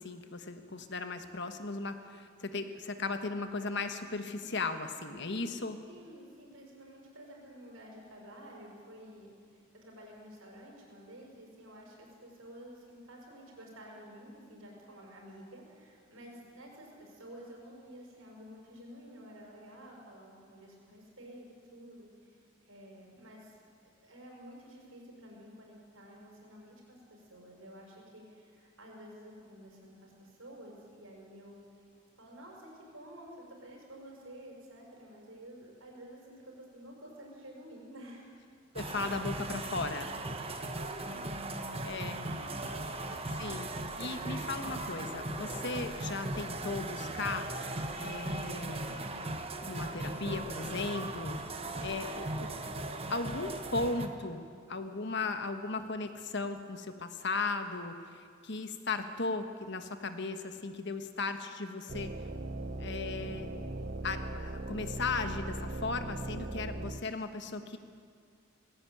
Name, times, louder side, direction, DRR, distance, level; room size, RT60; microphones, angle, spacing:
voice 1, 0.0-5.8 38.7-40.1 41.8-42.2 43.4-43.7 44.0-47.5 48.0-49.0 49.6-51.4 51.8-52.5 53.1-62.1 62.8-63.5 64.0-67.8, left 3 dB, 55° left, 8 dB, 1.4 m, -36 dB
voice 2, 5.1-5.5 5.9-23.5 23.8-31.6 32.2-38.3 40.6-41.4 42.2-42.9, equal, 75° right, -1 dB, 6.2 m, -51 dB
sound 1, 38.8-54.1, right 2 dB, 25° right, 1.3 m, -38 dB
sound 2, 61.9-67.0, right 2 dB, 45° right, 0.8 m, -39 dB
19.5 x 16.0 x 9.3 m, 2.2 s
head